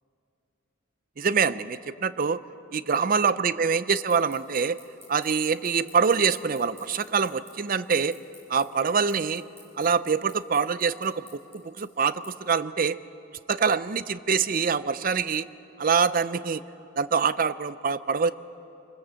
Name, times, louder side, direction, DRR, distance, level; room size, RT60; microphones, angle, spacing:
voice 1, 1.2-2.4 2.7-4.8 5.1-8.2 8.5-9.4 9.8-11.3 11.5-13.0 13.5-15.5 15.8-16.6 17.0-18.3, right 5 dB, 45° right, 15 dB, 0.5 m, -25 dB
sound 1, 3.9-12.3, equal, 10° right, 5.2 m, -50 dB
25.5 x 20.5 x 7.6 m, 2.9 s
head